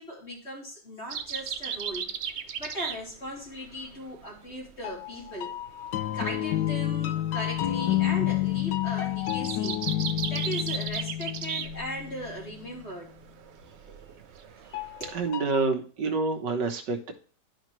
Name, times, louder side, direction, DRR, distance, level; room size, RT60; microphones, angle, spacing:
voice 1, 0.0-2.1 2.6-5.5 6.1-10.0 10.3-13.1 13.9-14.0 14.7-15.1, equal, 40° left, -3 dB, 3.3 m, -38 dB
sound 1, 1.1-15.3, right 8 dB, 60° right, 0.7 m, -38 dB
sound 2, 4.8-12.5 14.7-15.6, left 13 dB, 80° left, 1.4 m, -30 dB
voice 2, 15.1-17.1, right 3 dB, 80° right, 5 dB, 1.7 m, -27 dB
11.5 x 5.3 x 3.1 m, 0.40 s
omnidirectional pair, 1.9 m